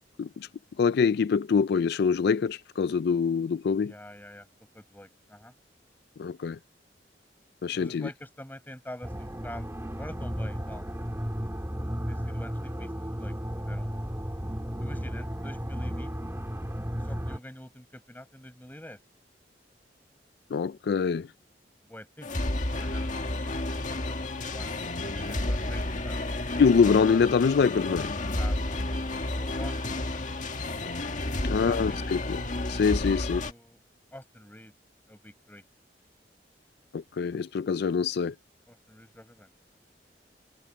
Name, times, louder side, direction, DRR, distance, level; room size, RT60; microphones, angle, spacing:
voice 1, 0.8-3.9 6.2-6.6 7.6-8.1 20.5-21.3 26.6-28.1 31.4-32.4 32.7-33.4 36.9-38.3, left 5 dB, 65° left, 0.4 m, -25 dB
voice 2, 3.9-4.5 4.7-5.5 7.7-11.0 12.1-13.9 14.8-16.2 16.9-19.0 21.8-22.3 22.7-26.2 28.3-29.0 29.3-30.2 31.3-32.0 33.0-33.8 34.1-34.7 35.1-35.6 38.7-39.5, left 1 dB, 10° left, 7.7 m, -46 dB
sound 1, 9.0-17.4, equal, 15° right, 2.3 m, -34 dB
sound 2, 22.2-33.5, left 2 dB, 45° left, 1.8 m, -31 dB
head